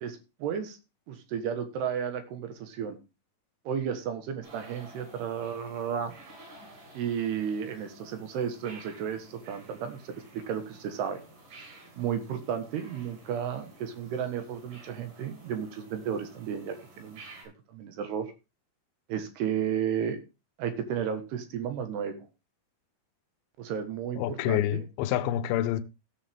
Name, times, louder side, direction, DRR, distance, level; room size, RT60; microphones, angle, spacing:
voice 1, 0.0-0.8 1.1-3.0 3.7-6.1 6.9-11.2 12.0-18.3 19.1-20.2 20.6-22.2 23.6-24.8, right 8 dB, 70° right, 3.4 m, -33 dB
sound 1, 4.4-17.4, right 2 dB, 50° right, 7.8 m, -52 dB
voice 2, 24.2-25.8, left 12 dB, 80° left, 2.3 m, -27 dB
16.5 x 7.4 x 3.5 m
omnidirectional pair, 5.0 m